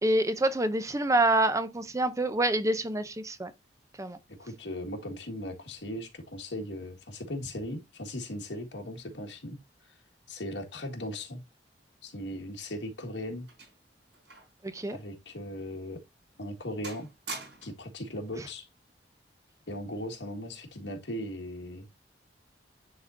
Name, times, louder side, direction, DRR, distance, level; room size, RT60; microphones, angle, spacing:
voice 1, 0.0-3.5 4.0-4.2 14.6-15.0, right 1 dB, 20° right, 0.6 m, -27 dB
voice 2, 4.4-9.6 9.9-10.0 10.3-11.4 12.0-13.5 14.9-16.0 16.4-17.1 17.6-18.7 19.7-21.9, left 1 dB, 85° left, 1.6 m, -38 dB
sound 1, 12.5-14.6 14.9-15.1 15.7-15.9 16.3-16.6 16.8-17.9 18.9-19.2, right 3 dB, 70° right, 4.3 m, -45 dB
10.0 x 3.7 x 2.6 m
head